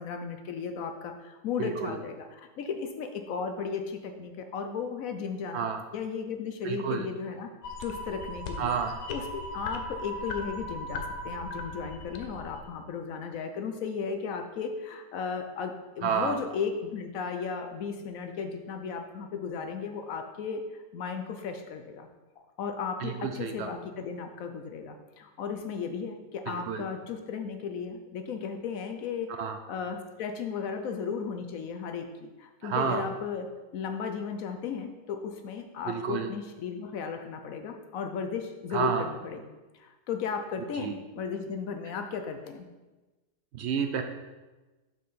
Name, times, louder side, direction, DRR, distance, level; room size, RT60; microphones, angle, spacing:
voice 1, 0.0-5.7 5.9-7.5 7.8-8.7 9.1-22.1 22.6-33.5 33.7-39.4 39.7-42.7, left 6 dB, 65° left, 6 dB, 0.9 m, -35 dB
voice 2, 1.6-2.0 5.5-5.8 6.6-7.1 8.6-9.0 16.0-16.4 23.0-23.7 26.5-26.9 29.4-29.6 32.6-33.0 35.9-36.3 38.7-39.1 40.8-40.9 43.5-44.0, right 7 dB, 75° right, 6 dB, 0.6 m, -30 dB
sound 1, 7.6-12.7, left 1 dB, 85° left, 1.4 m, -38 dB
5.9 x 4.7 x 5.7 m, 1.2 s
omnidirectional pair, 1.7 m